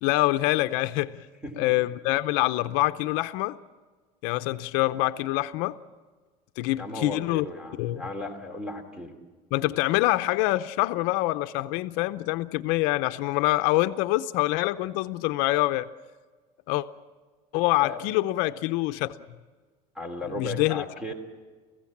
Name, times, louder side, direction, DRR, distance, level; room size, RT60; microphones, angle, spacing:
voice 1, 0.0-1.3 1.6-3.6 4.2-5.8 6.6-7.5 7.8-8.0 9.5-15.9 16.7-16.9 17.5-19.2 20.3-20.8, left 18 dB, 75° left, 0.7 m, -25 dB
voice 2, 6.8-9.2 17.8-18.0 19.9-21.1, left 2 dB, 5° right, 2.8 m, -35 dB
29.0 x 16.0 x 7.3 m
cardioid pair, 165°, 14 cm